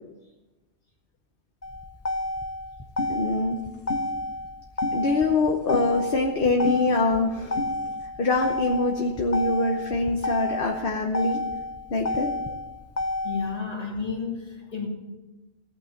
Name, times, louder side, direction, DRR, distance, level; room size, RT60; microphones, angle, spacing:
Motor vehicle (road), 1.6-13.6, left 2 dB, 20° left, 0.5 m, -30 dB
sound 1, 3.0-3.1 3.9-4.0 4.8-5.0 5.7-5.9 6.7-6.8 7.6-7.7, left 3 dB, 85° left, 1.6 m, -31 dB
voice 1, 3.1-3.6 4.9-7.6 8.2-11.4 11.9-12.3, left 3 dB, 55° left, 2 dB, 1.2 m, -24 dB
voice 2, 13.2-14.9, left 5 dB, 35° left, 0 dB, 2.3 m, -31 dB
16.5 x 6.1 x 7.1 m, 1.1 s
omnidirectional pair, 1.2 m